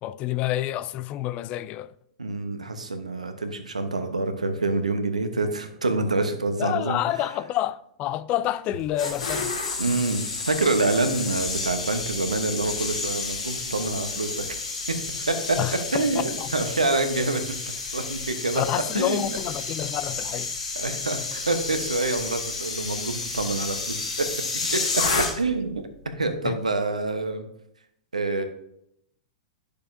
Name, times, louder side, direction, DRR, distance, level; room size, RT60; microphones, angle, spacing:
voice 1, 0.0-1.9 6.6-9.6 15.6-16.5 18.6-20.6 26.4-26.6, left 13 dB, 35° left, 0.3 m, -28 dB
voice 2, 2.2-7.2 9.8-14.6 14.9-15.0 15.3-15.6 15.9-17.6 17.9-18.6 18.9-19.4 20.8-24.3 24.7-25.0 25.3-27.5 28.1-28.4, right 3 dB, 85° right, 1.0 m, -27 dB
sound 1, 8.7-25.7 25.9-26.2, left 3 dB, 75° left, 2.6 m, -31 dB
10.5 x 6.7 x 2.7 m
figure-of-eight pair, 100°, 4 cm